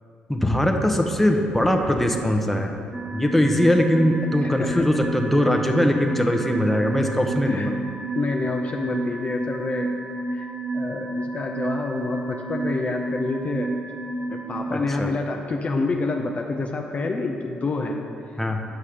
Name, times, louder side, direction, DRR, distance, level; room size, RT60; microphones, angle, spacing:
voice 1, 0.3-2.7 3.1-7.7 14.7-15.1 18.4-18.6, left 1 dB, 5° left, 3 dB, 0.8 m, -21 dB
sound 1, 2.9-14.6, right 2 dB, 20° right, 1.2 m, -31 dB
voice 2, 4.4-4.9 7.5-7.7 8.1-10.0 10.3-13.8 14.3-18.1, left 3 dB, 40° left, 2 dB, 0.6 m, -28 dB
6.6 x 5.6 x 5.0 m, 2.4 s
supercardioid pair, 55°, 4 cm